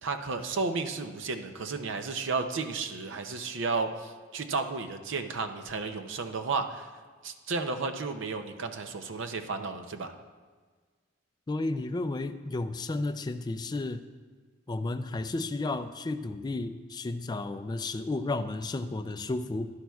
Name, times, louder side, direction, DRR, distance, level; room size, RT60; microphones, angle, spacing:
voice 1, 0.0-6.9 7.2-10.1, right 4 dB, 65° right, 8 dB, 0.6 m, -33 dB
voice 2, 11.5-14.0 14.7-19.7, left 2 dB, 20° left, 9 dB, 0.3 m, -32 dB
11.5 x 10.5 x 2.3 m, 1.5 s
head